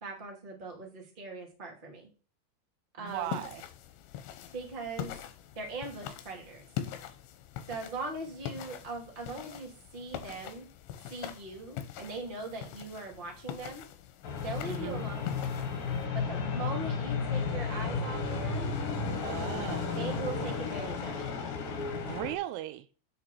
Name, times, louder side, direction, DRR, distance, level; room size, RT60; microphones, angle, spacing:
voice 1, 0.0-2.1 3.0-3.4 4.5-5.1 5.5-6.6 7.7-10.7 11.1-13.8 14.4-15.3 16.1-18.7 19.8-21.3, right 3 dB, 20° right, 1.3 m, -40 dB
voice 2, 3.0-3.6 14.6-15.0 19.2-20.1 22.0-22.9, right 14 dB, 90° right, 3.1 m, -37 dB
sound 1, 3.1-16.1, left 10 dB, 75° left, 3.0 m, -43 dB
sound 2, 14.2-22.3, left 5 dB, 60° left, 2.7 m, -33 dB
9.2 x 6.9 x 4.7 m
omnidirectional pair, 5.6 m